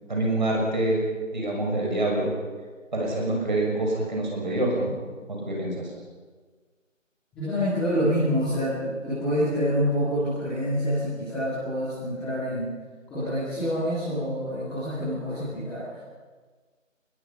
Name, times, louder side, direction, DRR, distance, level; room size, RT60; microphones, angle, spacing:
voice 1, 0.1-1.0 1.3-2.3 2.9-4.9 5.3-5.9, right 1 dB, 35° right, -1 dB, 6.4 m, -26 dB
voice 2, 7.3-12.7 13.1-16.0, equal, ahead, -17 dB, 3.2 m, -27 dB
27.0 x 21.0 x 5.8 m, 1.4 s
figure-of-eight pair, 175°, 39 cm